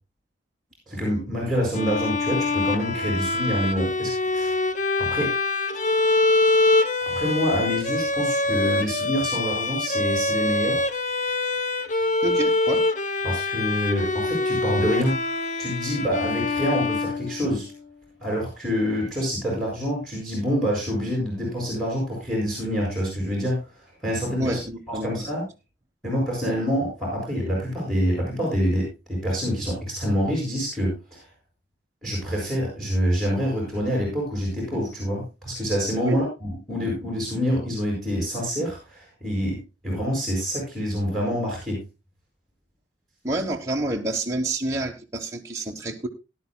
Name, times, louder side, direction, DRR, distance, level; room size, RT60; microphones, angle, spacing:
voice 1, 0.9-4.6 5.0-5.3 7.1-10.9 13.2-15.2 15.6-17.7 18.2-24.6 25.0-25.4 26.0-31.3 32.0-41.8, equal, ahead, -2 dB, 7.1 m, -26 dB
Bowed string instrument, 1.7-17.8, left 2 dB, 40° left, 0.9 m, -24 dB
voice 2, 12.2-12.8 24.4-25.3 36.0-36.2 43.2-46.1, right 2 dB, 15° right, -1 dB, 1.3 m, -28 dB
19.0 x 11.5 x 2.3 m, 0.27 s
head